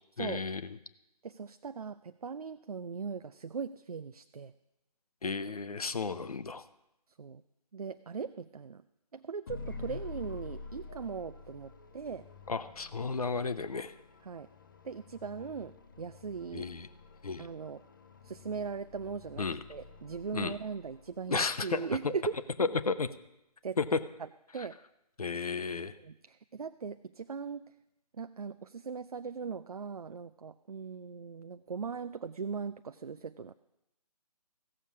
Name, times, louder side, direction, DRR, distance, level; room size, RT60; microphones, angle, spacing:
voice 1, 0.2-0.8 5.2-6.6 12.5-13.9 16.5-16.9 17.2-17.5 19.4-19.6 20.3-20.6 21.3-21.9 22.6-23.1 23.8-24.0 24.6-24.7 25.2-26.0, left 4 dB, 60° left, 13 dB, 0.8 m, -33 dB
voice 2, 1.2-4.5 7.2-7.4 7.7-8.8 9.1-12.3 14.3-14.5 14.8-16.7 17.4-17.8 18.2-22.3 23.6-23.8 24.2-24.3 24.5-24.8 26.0-27.7 28.1-33.5, right 5 dB, 65° right, 11 dB, 0.5 m, -39 dB
sound 1, 9.5-21.6, left 3 dB, 30° left, 0.6 m, -48 dB
15.0 x 6.9 x 7.2 m, 0.87 s
figure-of-eight pair, 145°, 21 cm